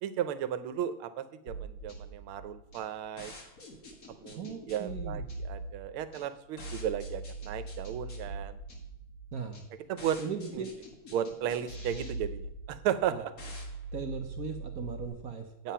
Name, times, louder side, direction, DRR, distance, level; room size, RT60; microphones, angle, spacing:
voice 1, 0.0-3.3 4.1-8.6 9.9-10.2 10.5-10.6 11.1-13.3 15.6-15.7, right 10 dB, 85° right, 12 dB, 1.6 m, -34 dB
sound 1, 1.5-15.1, right 2 dB, 45° left, 2.0 m, -42 dB
voice 2, 4.4-5.3 9.3-9.6 10.2-10.7 13.1-13.2 13.9-15.5, right 6 dB, 55° right, 5 dB, 1.1 m, -38 dB
9.5 x 7.2 x 5.6 m, 0.82 s
omnidirectional pair, 2.3 m